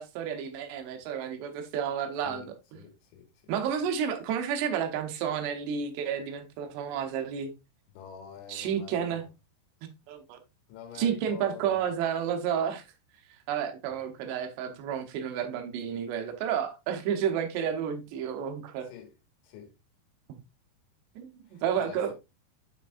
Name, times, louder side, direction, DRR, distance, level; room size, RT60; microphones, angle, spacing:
voice 1, 0.0-2.5 3.5-7.5 8.5-9.2 9.8-10.4 11.0-12.8 13.5-18.9 20.3-20.4 21.2-22.1, right 8 dB, 75° right, 2.8 m, -31 dB
voice 2, 2.7-3.5 7.9-9.3 10.7-11.8 18.8-19.1 19.4-19.7 21.5-22.1, left 8 dB, 75° left, 3.9 m, -46 dB
7.8 x 5.9 x 2.5 m
omnidirectional pair, 5.6 m